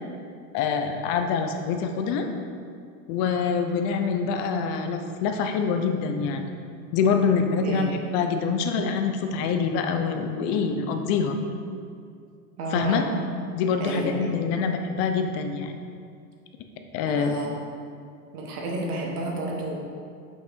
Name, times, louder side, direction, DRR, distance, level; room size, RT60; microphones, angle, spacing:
voice 1, 0.5-2.3 3.1-6.5 6.9-11.3 12.7-13.0 13.5-15.7 16.9-17.3, left 5 dB, 45° left, 6 dB, 0.8 m, -25 dB
voice 2, 12.6-13.0 13.8-14.4 17.1-17.6 18.3-19.8, right 2 dB, 90° right, -1 dB, 1.7 m, -31 dB
5.8 x 5.8 x 4.4 m, 2.3 s
supercardioid pair, 130°, 44 cm